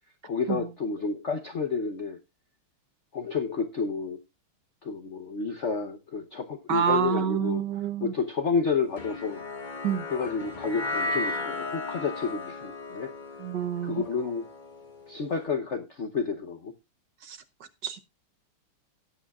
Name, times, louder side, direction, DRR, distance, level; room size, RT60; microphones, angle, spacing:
voice 1, 0.2-2.2 3.1-4.2 4.8-7.6 8.0-9.4 10.1-13.1 13.8-14.5 15.1-16.7, left 5 dB, 60° left, 0.7 m, -30 dB
voice 2, 6.7-8.1 9.8-10.1 13.4-14.0 17.2-17.4 17.8-18.0, right 8 dB, 65° right, 1.1 m, -27 dB
sound 1, 9.0-15.3, left 2 dB, 30° left, 1.0 m, -35 dB
18.0 x 8.9 x 2.4 m
omnidirectional pair, 2.4 m